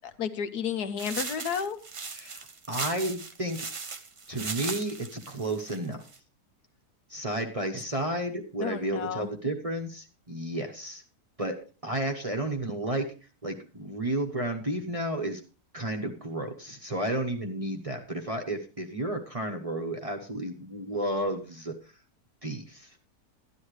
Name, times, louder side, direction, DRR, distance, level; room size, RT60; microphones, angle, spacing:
voice 1, 0.0-1.8 8.6-9.3, left 7 dB, 75° left, 9 dB, 1.4 m, -32 dB
sound 1, 1.0-6.2, right 4 dB, 55° right, 0.3 m, -38 dB
voice 2, 2.7-3.7 4.3-6.0 7.1-11.0 11.4-11.5 11.8-13.1 13.4-15.4 15.7-21.7 22.4-22.9, right 1 dB, 25° right, 2 dB, 0.9 m, -32 dB
12.5 x 10.5 x 3.2 m, 0.38 s
omnidirectional pair, 1.7 m